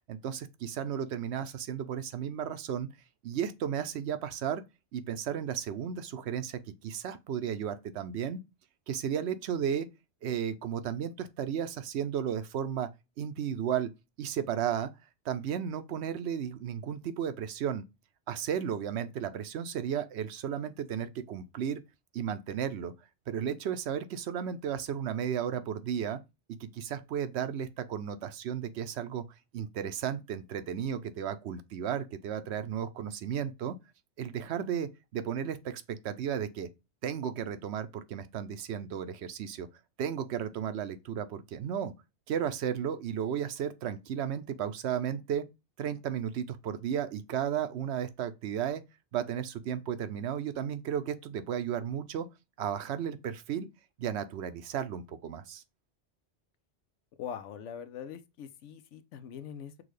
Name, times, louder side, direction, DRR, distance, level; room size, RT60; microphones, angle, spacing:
voice 1, 0.1-2.9 3.2-4.6 4.9-8.4 8.9-9.9 10.2-12.9 13.2-13.9 14.2-14.9 15.2-17.8 18.3-21.8 22.1-22.9 23.3-26.2 26.6-29.2 29.5-33.8 34.2-36.7 37.0-39.7 40.0-41.9 42.3-45.4 45.8-48.8 49.1-52.3 52.6-53.7 54.0-55.6, right 8 dB, 70° right, 0.9 m, -34 dB
voice 2, 57.2-59.8, left 8 dB, 80° left, 0.9 m, -42 dB
6.2 x 2.3 x 3.2 m
omnidirectional pair, 1.2 m